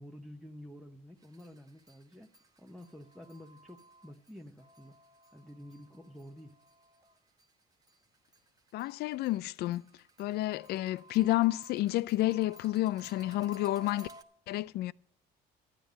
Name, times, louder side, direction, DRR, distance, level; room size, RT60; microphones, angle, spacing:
voice 1, 0.0-2.3 2.6-5.0 5.3-6.6, equal, ahead, 0.9 m, -50 dB
sound 1, 1.2-7.4 7.8-14.2, right 1 dB, 20° right, 1.2 m, -56 dB
voice 2, 8.7-9.8 10.2-14.1 14.5-14.9, left 16 dB, 70° left, 0.4 m, -30 dB
12.5 x 9.0 x 5.1 m
cardioid pair, 110°, 17 cm